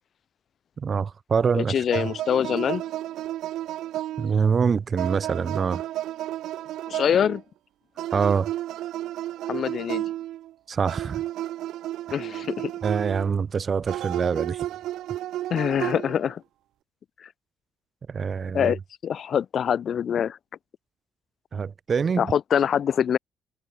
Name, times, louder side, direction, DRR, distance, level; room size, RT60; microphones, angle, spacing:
voice 1, 0.8-1.8 4.2-5.8 8.1-8.5 10.7-11.2 12.8-14.7 18.1-18.7 21.5-22.3, right 6 dB, 30° right, 0.4 m, -25 dB
voice 2, 1.5-2.8 6.9-7.4 9.5-10.1 12.1-12.7 15.5-16.4 17.2-17.3 18.5-20.4 22.2-23.2, left 8 dB, 40° left, 0.8 m, -24 dB
sound 1, 1.9-4.5 5.0-7.4 8.0-10.5 10.9-13.3 13.9-16.3, right 13 dB, 70° right, 2.1 m, -32 dB
cardioid pair, 160°, 0 cm